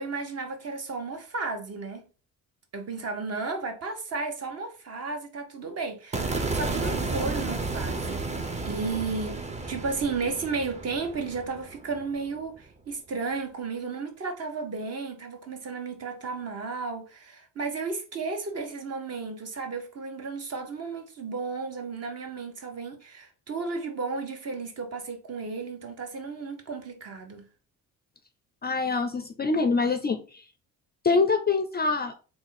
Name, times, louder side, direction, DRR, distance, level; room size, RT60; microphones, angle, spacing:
voice 1, 0.0-2.1 2.7-27.5, right 4 dB, 45° right, 1.0 m, -34 dB
sound 1, 6.1-12.4, right 3 dB, 20° right, 0.6 m, -32 dB
voice 2, 28.6-30.2 31.0-32.1, left 4 dB, 30° left, 0.4 m, -24 dB
3.5 x 2.4 x 4.0 m
cardioid pair, 95°, 36 cm